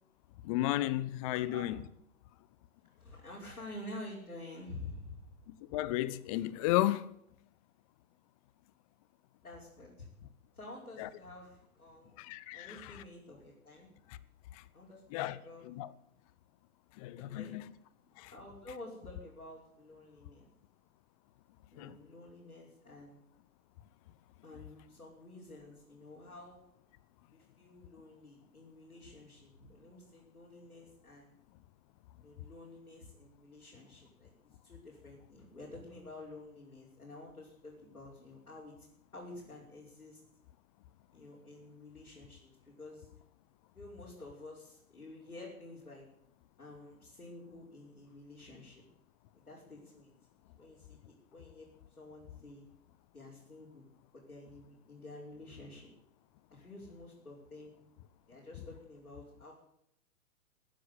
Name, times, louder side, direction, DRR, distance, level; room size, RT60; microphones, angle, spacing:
voice 1, 0.4-1.7 5.5-7.0 11.0-11.1 12.2-12.8 15.1-15.4 15.7-15.9 17.0-17.6 18.2-18.3 21.8-21.9, left 15 dB, 25° left, 0.7 m, -33 dB
voice 2, 1.3-1.7 3.0-5.3 9.4-10.1 10.5-12.2 12.5-13.9 14.7-15.7 17.3-17.6 18.2-20.5 21.7-23.2 24.4-26.6 27.3-31.3 32.2-34.3 34.6-38.9 39.1-40.2 41.1-43.1 43.7-46.1 46.6-48.8 49.3-52.6 53.1-53.9 54.1-55.9 56.5-57.8 58.3-59.5, left 2 dB, 85° left, 5.8 m, -50 dB
15.5 x 10.5 x 8.4 m
figure-of-eight pair, 125°, 43 cm